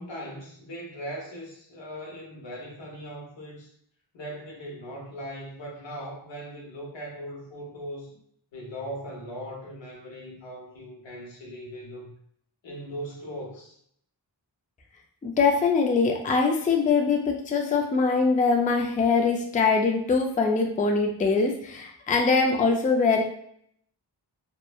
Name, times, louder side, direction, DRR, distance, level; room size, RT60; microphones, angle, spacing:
voice 1, 0.0-3.7 4.1-8.1 8.5-12.1 12.6-13.7, equal, 90° left, -2 dB, 0.9 m, -39 dB
voice 2, 15.2-23.2, left 4 dB, 20° left, 2 dB, 0.3 m, -23 dB
2.9 x 2.1 x 2.2 m, 0.67 s
wide cardioid pair, 85°, 43 cm